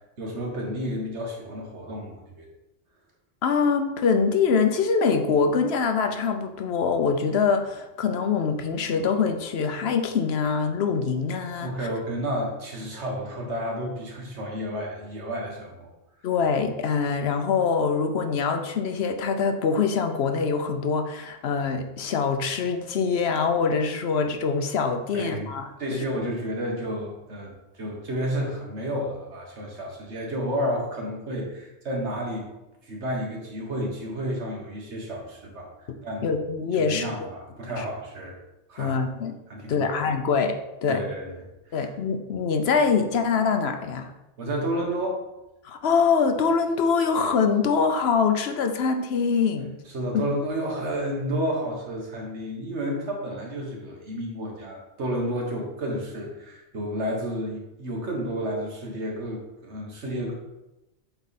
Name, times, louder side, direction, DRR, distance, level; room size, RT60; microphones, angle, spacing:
voice 1, 0.2-2.5 11.6-15.9 25.1-25.5 25.8-32.5 32.8-35.7 36.0-36.3 36.7-38.4 38.7-38.9 39.5-40.0 40.9-41.4 41.7-41.9 44.4-45.2 49.9-60.3, equal, 85° right, 0 dB, 1.7 m, -31 dB
voice 2, 3.4-11.7 16.2-26.0 36.2-37.3 37.7-37.8 38.8-39.4 39.7-41.0 41.7-44.1 45.6-49.7, left 5 dB, 70° left, 6 dB, 0.9 m, -24 dB
7.9 x 3.6 x 4.2 m, 0.97 s
omnidirectional pair, 1.1 m